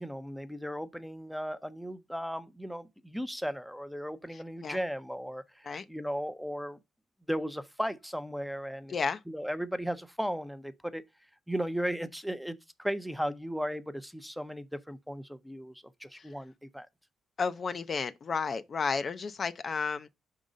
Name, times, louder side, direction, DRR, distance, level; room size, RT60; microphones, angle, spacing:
voice 1, 0.0-6.8 7.3-9.0 9.3-11.0 11.5-16.9, equal, ahead, 0.6 m, -36 dB
voice 2, 8.9-9.2 16.1-16.3 17.4-20.1, left 5 dB, 40° left, 0.4 m, -32 dB
5.1 x 3.8 x 5.1 m
cardioid pair, 90°, 0 cm